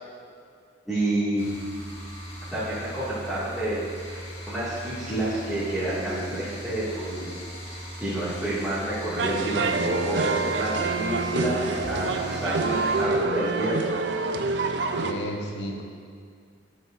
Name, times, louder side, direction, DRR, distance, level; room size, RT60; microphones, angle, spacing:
voice 1, 0.9-1.4 2.5-4.2 4.5-7.3 8.0-13.8, right 1 dB, ahead, -14 dB, 1.9 m, -29 dB
sound 1, 1.4-13.0, equal, 30° left, 1.5 m, -39 dB
sound 2, 9.2-15.1, right 4 dB, 65° right, 0.5 m, -27 dB
voice 2, 14.9-15.8, equal, 65° left, 1 dB, 0.9 m, -33 dB
11.0 x 7.2 x 2.5 m, 2.1 s
head